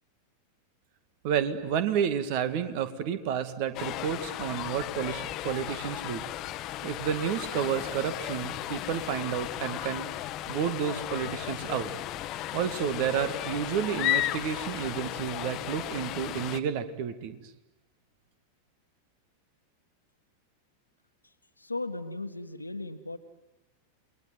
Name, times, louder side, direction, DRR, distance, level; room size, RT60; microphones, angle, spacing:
voice 1, 1.2-6.3 6.8-10.1 10.5-11.9 12.5-17.4, right 8 dB, 45° right, 10 dB, 2.1 m, -30 dB
sound 1, 3.7-16.6, left 14 dB, 35° left, 1.2 m, -35 dB
voice 2, 21.6-23.2, left 2 dB, 85° left, 9 dB, 1.6 m, -36 dB
29.5 x 21.0 x 9.5 m, 1.1 s
figure-of-eight pair, 90°, 0 cm